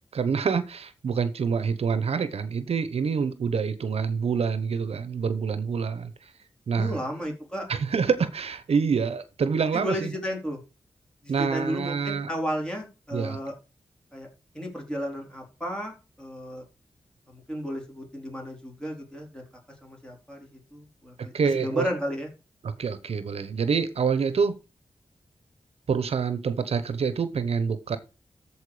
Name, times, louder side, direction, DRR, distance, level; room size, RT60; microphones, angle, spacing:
voice 1, 0.1-6.1 6.7-6.9 7.7-10.1 11.3-12.3 13.1-13.4 21.3-21.9 22.6-24.6 25.9-28.0, right 6 dB, 80° right, 0.9 m, -26 dB
voice 2, 6.7-7.7 9.7-10.6 11.2-13.5 14.1-14.3 14.5-16.6 17.3-19.4 19.8-21.3 21.6-22.3, equal, 10° left, 4.1 m, -33 dB
14.0 x 4.7 x 4.9 m
wide cardioid pair, 100°, 10 cm